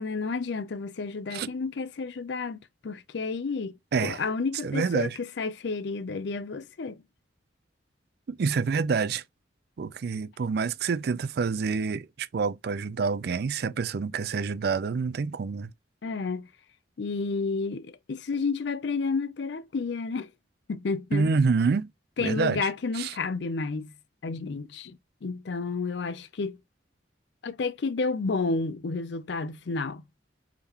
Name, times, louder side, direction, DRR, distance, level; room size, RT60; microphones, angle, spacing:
voice 1, 0.0-3.7 4.0-7.0 16.0-16.5 17.0-20.3 20.7-21.3 22.2-23.9 24.2-26.6 27.4-30.0, left 4 dB, 65° left, 0.5 m, -31 dB
voice 2, 3.9-4.2 4.6-5.2 8.3-9.2 9.8-15.7 21.1-21.9 22.2-22.6 23.0-23.1, right 5 dB, 55° right, 0.4 m, -27 dB
3.6 x 3.6 x 2.8 m
head